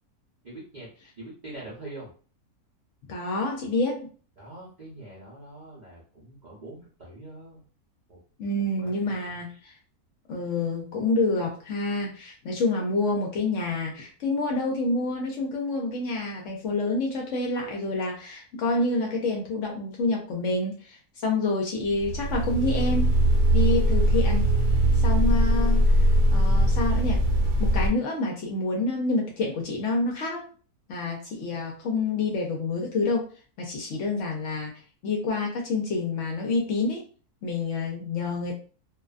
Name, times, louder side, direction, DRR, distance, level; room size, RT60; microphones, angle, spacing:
voice 1, 0.4-0.9 1.2-2.1 4.4-7.6 8.1-8.2 8.5-9.0 9.3-9.4, right 2 dB, 50° right, -6 dB, 0.5 m, -43 dB
voice 2, 3.1-4.1 8.4-9.7 10.3-20.8 21.2-23.1 23.5-24.5 25.0-26.0 26.3-27.2 27.6-30.4 30.9-33.3 33.6-34.7 35.0-37.0 37.4-38.5, left 2 dB, 65° left, 0 dB, 0.8 m, -27 dB
sound 1, 21.9-27.9, equal, 70° right, 1.0 m, -21 dB
2.6 x 2.2 x 2.4 m, 0.39 s
omnidirectional pair, 1.6 m